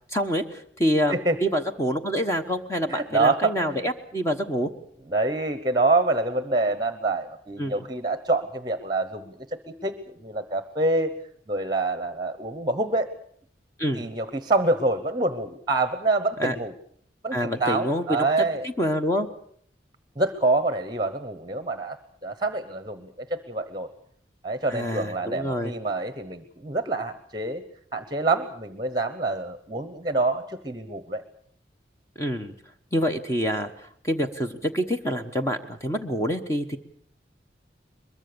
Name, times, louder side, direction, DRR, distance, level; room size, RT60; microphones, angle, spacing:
voice 1, 0.1-4.7 7.6-7.8 13.8-14.1 16.4-16.5 17.3-18.1 18.6-19.3 24.7-25.7 32.2-32.5 32.9-36.8, equal, 15° left, 5 dB, 1.1 m, -26 dB
voice 2, 2.9-3.8 5.1-9.6 9.8-11.1 11.5-13.1 13.9-16.7 17.2-18.7 20.2-22.0 22.2-23.9 24.4-27.6 27.9-31.2, right 2 dB, 25° right, 11 dB, 1.0 m, -26 dB
22.5 x 22.0 x 6.9 m, 0.63 s
head